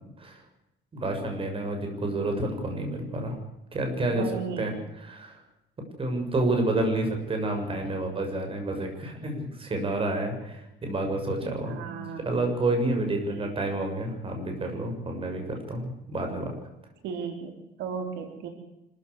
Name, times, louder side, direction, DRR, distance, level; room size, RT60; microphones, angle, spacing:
voice 1, 0.9-3.4 3.7-5.4 5.8-11.8 12.2-16.5, right 2 dB, 30° right, 4 dB, 6.9 m, -29 dB
voice 2, 4.1-4.7 11.4-12.2 13.3-13.6 17.0-17.5 17.8-18.5, right 6 dB, 90° right, 4 dB, 4.5 m, -35 dB
26.0 x 15.0 x 8.4 m, 0.92 s
cardioid pair, 135°, 18 cm